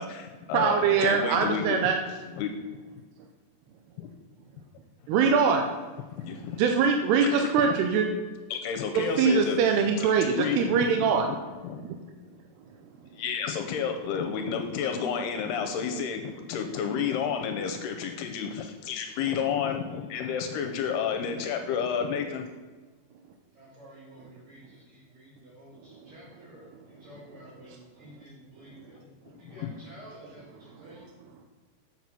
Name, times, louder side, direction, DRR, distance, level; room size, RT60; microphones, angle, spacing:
voice 1, 0.0-1.9 2.4-2.5 4.0-4.1 6.2-6.6 7.2-7.7 8.5-9.6 10.0-10.8 11.6-11.8 13.1-22.5 29.5-29.7, left 7 dB, 80° left, 5 dB, 2.6 m, -31 dB
voice 2, 0.5-2.0 5.1-5.7 6.6-8.1 8.9-11.3 27.7-27.8 30.7-30.9, right 6 dB, 80° right, 3 dB, 2.7 m, -23 dB
voice 3, 23.5-29.0 29.4-31.0, right 1 dB, 55° right, -9 dB, 3.8 m, -51 dB
7.6 x 7.6 x 5.9 m, 1.3 s
omnidirectional pair, 5.0 m